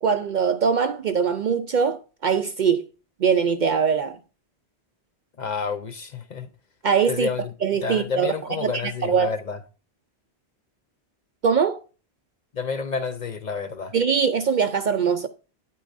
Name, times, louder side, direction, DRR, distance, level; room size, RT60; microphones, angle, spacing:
voice 1, 0.0-2.8 3.2-4.2 6.8-7.3 7.6-8.3 8.6-8.7 9.0-9.3 11.4-11.8 13.9-15.3, right 6 dB, 55° right, 0.5 m, -22 dB
voice 2, 5.4-6.5 7.1-7.5 7.8-9.6 12.5-14.0, left 5 dB, 50° left, 0.7 m, -29 dB
9.0 x 8.4 x 2.5 m
omnidirectional pair, 1.1 m